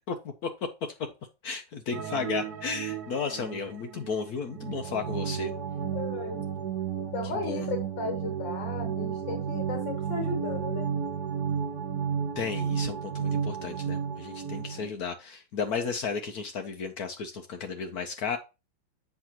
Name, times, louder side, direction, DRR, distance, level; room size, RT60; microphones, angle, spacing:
voice 1, 1.4-5.5 7.3-7.7 12.4-18.4, left 5 dB, 65° left, 1.1 m, -33 dB
sound 1, 1.9-14.9, right 7 dB, 65° right, 1.4 m, -33 dB
voice 2, 5.9-6.5 7.1-10.9, left 4 dB, 85° left, 1.9 m, -35 dB
7.9 x 5.9 x 2.9 m
omnidirectional pair, 2.0 m